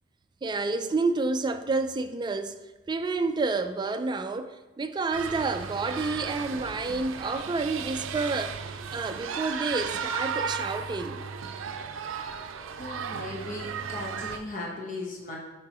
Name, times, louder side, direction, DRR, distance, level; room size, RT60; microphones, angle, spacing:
voice 1, 0.4-2.6 2.9-11.2, right 3 dB, 25° right, 0.3 m, -29 dB
sound 1, 5.1-14.4, right 6 dB, 85° right, 0.4 m, -35 dB
voice 2, 12.8-15.4, left 2 dB, 45° left, 1.1 m, -37 dB
8.4 x 4.7 x 3.0 m
head